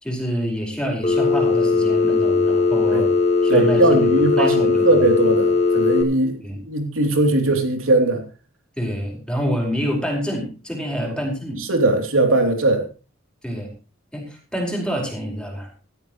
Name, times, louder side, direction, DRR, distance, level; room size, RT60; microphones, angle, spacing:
voice 1, 0.0-3.1 3.4-5.1 6.4-6.6 8.8-11.6 13.4-13.7 14.1-15.7, equal, 5° left, 5.0 m, -27 dB
Telephone, 1.0-6.0, left 4 dB, 35° left, 2.4 m, -18 dB
voice 2, 3.5-6.4 6.7-8.2 11.1-11.2 11.6-12.8, right 2 dB, 85° right, 3.1 m, -19 dB
16.5 x 13.5 x 3.2 m
head